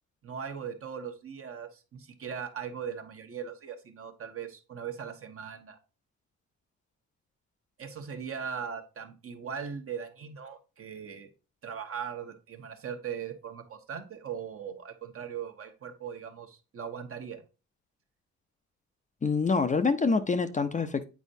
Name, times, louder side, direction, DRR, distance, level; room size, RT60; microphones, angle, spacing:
voice 1, 0.2-5.8 7.8-11.3 11.6-17.4, right 7 dB, 50° right, 5 dB, 1.1 m, -39 dB
voice 2, 19.2-21.1, left 4 dB, 25° left, 8 dB, 0.6 m, -26 dB
8.3 x 4.4 x 2.6 m, 0.31 s
cardioid pair, 90°, 30 cm